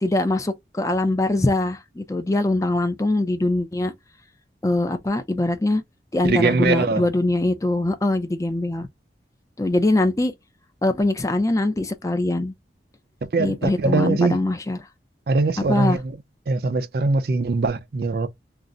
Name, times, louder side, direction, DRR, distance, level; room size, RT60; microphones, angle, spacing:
voice 1, 0.0-3.9 4.6-5.8 6.1-8.9 9.6-10.3 10.8-12.5 13.4-14.8 15.6-16.0, left 2 dB, 20° left, 0.4 m, -22 dB
voice 2, 6.2-7.1 13.2-14.4 15.3-16.1 16.5-18.3, right 3 dB, 60° right, 0.4 m, -22 dB
2.6 x 2.0 x 3.4 m
head